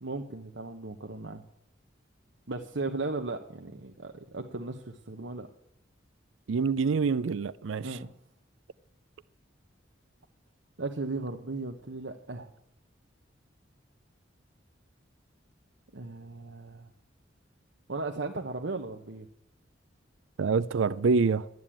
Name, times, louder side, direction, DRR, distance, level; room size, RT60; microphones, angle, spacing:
voice 1, 0.0-1.4 2.5-5.5 7.8-8.1 10.8-12.5 15.9-16.9 17.9-19.3, right 3 dB, 70° right, 1.0 m, -36 dB
voice 2, 6.5-7.9 20.4-21.5, right 4 dB, 85° right, 0.5 m, -26 dB
12.5 x 9.5 x 8.7 m
head